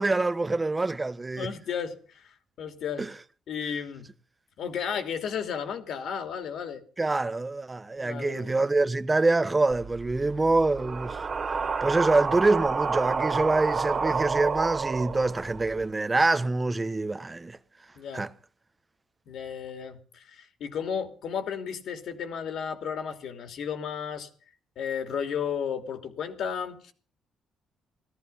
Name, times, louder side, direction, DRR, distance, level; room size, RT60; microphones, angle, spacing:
voice 1, 0.0-1.5 3.0-3.1 7.0-11.2 11.8-17.6 18.1-18.3, right 3 dB, 20° right, 1.1 m, -25 dB
voice 2, 1.4-3.1 3.5-4.1 4.6-6.8 8.0-8.5 18.0-18.3 19.3-24.3 24.8-26.9, left 7 dB, 75° left, 3.0 m, -33 dB
sound 1, 9.7-15.8, right 5 dB, 40° right, 2.3 m, -30 dB
17.5 x 14.0 x 5.7 m
cardioid pair, 90°, 0 cm